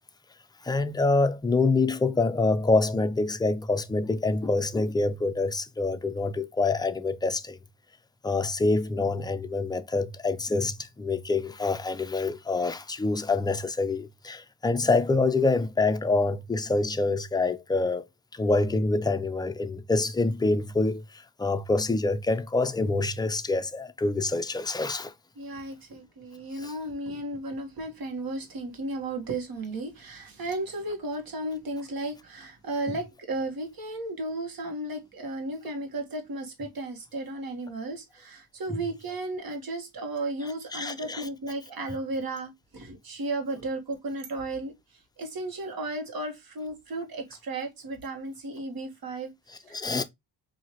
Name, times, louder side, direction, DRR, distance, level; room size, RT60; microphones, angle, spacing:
voice 1, 0.6-7.6 8.2-18.0 18.3-25.1 26.6-26.7 40.7-41.2 49.7-50.0, left 3 dB, 10° left, 0.4 m, -26 dB
voice 2, 25.3-50.0, right 2 dB, 55° right, 1.4 m, -34 dB
4.5 x 2.7 x 2.9 m
cardioid pair, 100°, 43 cm